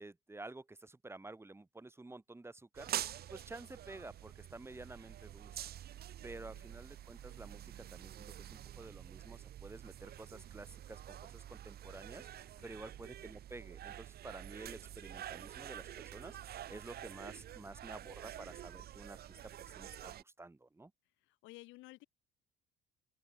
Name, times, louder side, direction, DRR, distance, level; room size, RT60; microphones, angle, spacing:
voice 1, 0.0-5.6 6.2-20.9, right 2 dB, 10° right, 1.9 m, -51 dB
sound 1, 2.7-20.2, right 11 dB, 50° right, 1.1 m, -47 dB
voice 2, 6.2-6.6 12.6-13.0 17.5-18.3 21.2-22.1, left 20 dB, 70° left, 2.0 m, -58 dB
open air
supercardioid pair, 70°, 20 cm